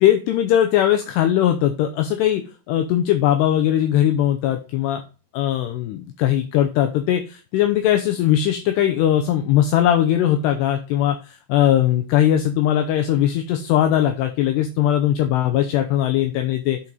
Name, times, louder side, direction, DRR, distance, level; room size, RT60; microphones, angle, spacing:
voice 1, 0.0-5.0 5.3-16.8, left 11 dB, 80° left, 6 dB, 2.5 m, -19 dB
8.5 x 4.6 x 3.9 m, 0.33 s
omnidirectional pair, 5.3 m